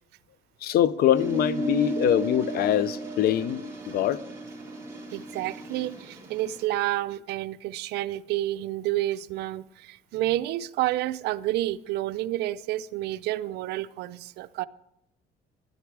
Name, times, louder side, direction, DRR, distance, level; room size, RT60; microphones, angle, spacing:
voice 1, 0.6-4.2, left 11 dB, 65° left, 0.6 m, -24 dB
sound 1, 1.1-5.9, right 2 dB, 5° left, 2.8 m, -34 dB
sound 2, 1.1-6.7, right 2 dB, 15° right, 3.1 m, -47 dB
voice 2, 5.1-14.7, right 15 dB, 80° right, 0.5 m, -29 dB
12.0 x 11.0 x 4.7 m
cardioid pair, 110°, 17 cm